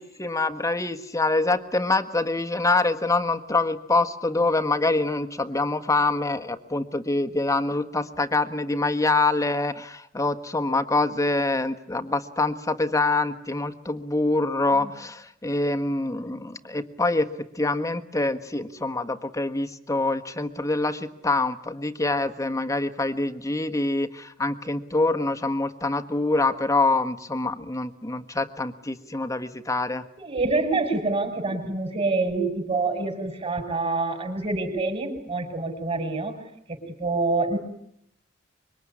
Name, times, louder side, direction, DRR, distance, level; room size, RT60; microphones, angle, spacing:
voice 1, 0.0-30.0, left 2 dB, 15° left, 9 dB, 1.4 m, -25 dB
voice 2, 30.2-36.4 36.7-37.6, right 3 dB, 30° right, 6 dB, 5.7 m, -26 dB
25.5 x 23.5 x 9.8 m, 0.74 s
head